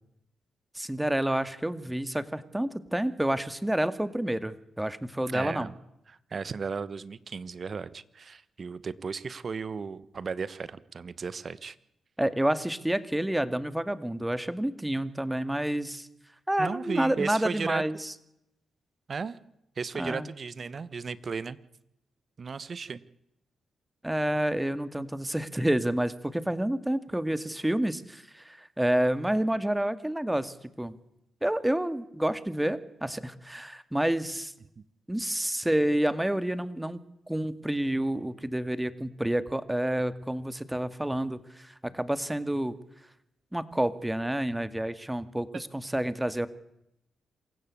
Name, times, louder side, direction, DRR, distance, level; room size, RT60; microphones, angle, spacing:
voice 1, 0.7-5.7 12.2-16.1 16.5-18.1 20.0-20.3 24.0-31.0 31.4-34.5 35.1-37.0 37.3-42.8 43.5-46.5, right 1 dB, 10° right, 13 dB, 2.2 m, -29 dB
voice 2, 5.3-5.7 6.1-11.8 16.6-17.8 19.1-19.4 19.8-21.6 22.4-23.0, right 5 dB, 55° right, 17 dB, 1.3 m, -35 dB
27.0 x 16.0 x 8.6 m, 0.82 s
supercardioid pair, 45°, 0 cm